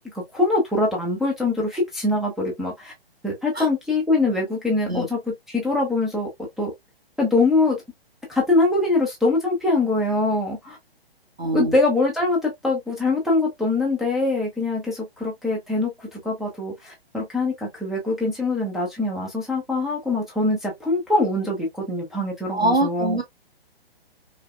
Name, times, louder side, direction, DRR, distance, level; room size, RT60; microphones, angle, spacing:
voice 1, 0.1-2.9 3.2-5.2 5.5-6.3 6.6-6.7 7.2-7.8 8.3-10.8 11.5-23.2, left 2 dB, ahead, 0.5 m, -23 dB
voice 2, 11.4-11.7 22.5-23.2, right 1 dB, 85° right, 1.6 m, -23 dB
4.9 x 2.1 x 2.3 m
figure-of-eight pair, 125°, 30 cm